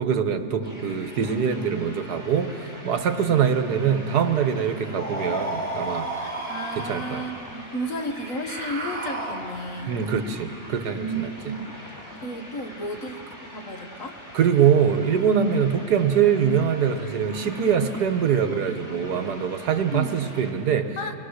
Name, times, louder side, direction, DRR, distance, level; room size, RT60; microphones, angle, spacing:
voice 1, 0.0-6.1 6.8-7.2 9.9-11.3 14.3-20.9, right 7 dB, 75° right, 8 dB, 1.6 m, -23 dB
sound 1, 0.6-20.5, equal, 10° left, 4.9 m, -43 dB
sound 2, 5.0-7.4 8.1-9.8, right 2 dB, 30° right, 3.0 m, -32 dB
voice 2, 6.2-10.0 10.9-11.7 12.2-13.2 13.5-14.2 19.9-20.2 21.0-21.1, right 1 dB, 55° left, 5 dB, 1.7 m, -33 dB
28.5 x 21.0 x 6.5 m, 3.0 s
omnidirectional pair, 1.8 m